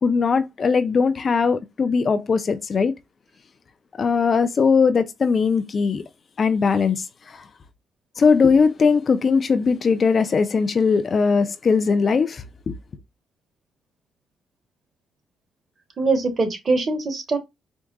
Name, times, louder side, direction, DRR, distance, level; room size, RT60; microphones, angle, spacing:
voice 1, 0.0-2.9 4.0-6.0 6.4-7.4 8.2-12.4, left 5 dB, 45° left, 0.6 m, -20 dB
voice 2, 16.0-17.4, right 3 dB, 40° right, 1.5 m, -22 dB
4.6 x 2.6 x 2.3 m
cardioid pair, 90°, 0 cm